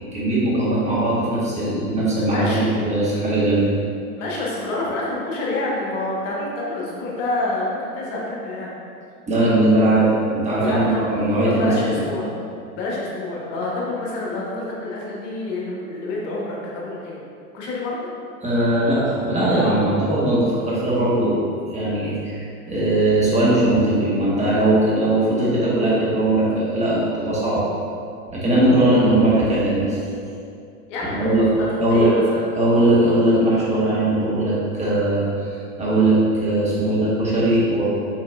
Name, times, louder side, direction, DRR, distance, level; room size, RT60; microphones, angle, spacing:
voice 1, 0.1-3.7 9.3-12.0 18.4-21.4 21.7-27.6 28.3-30.0 31.1-31.5 31.8-32.2 32.5-37.8, right 1 dB, 15° right, -8 dB, 1.1 m, -19 dB
voice 2, 2.3-2.7 4.2-8.7 10.6-11.1 11.4-12.3 12.8-17.2 17.5-18.0 30.9-32.4, left 2 dB, 55° left, -4 dB, 1.1 m, -27 dB
4.6 x 4.1 x 2.3 m, 2.5 s
hypercardioid pair, 90°, 45 cm